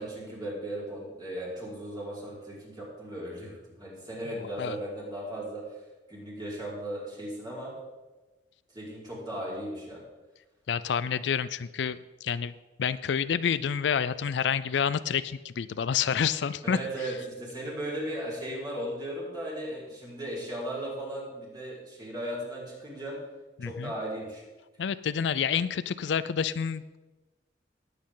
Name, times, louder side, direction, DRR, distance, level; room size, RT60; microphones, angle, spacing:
voice 1, 0.0-5.6 6.1-7.7 8.7-10.0 16.6-23.1 23.6-24.4, right 1 dB, 25° right, -6 dB, 4.6 m, -36 dB
voice 2, 10.7-12.5 12.8-16.8 23.6-23.9 24.8-27.0, left 7 dB, 75° left, 15 dB, 0.4 m, -28 dB
18.5 x 8.7 x 3.8 m, 1.2 s
head